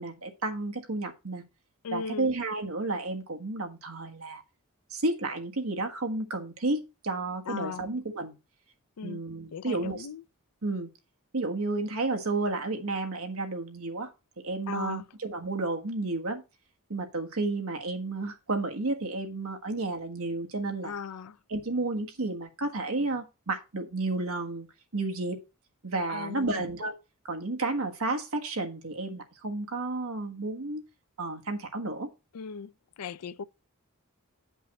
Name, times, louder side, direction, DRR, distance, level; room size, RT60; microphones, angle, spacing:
voice 1, 0.0-1.4 1.9-4.4 4.9-8.4 9.0-10.1 10.6-10.9 11.3-14.1 14.4-16.4 16.9-20.9 21.5-24.7 24.9-25.4 25.8-27.0 27.2-30.8 31.2-32.1, right 2 dB, 65° right, 1.4 m, -32 dB
voice 2, 1.8-2.3 7.5-7.9 9.0-9.2 9.5-10.2 14.7-15.0 20.8-21.4 26.1-26.7 32.3-32.7 33.0-33.4, left 6 dB, 85° left, 0.5 m, -37 dB
8.7 x 5.4 x 4.2 m
head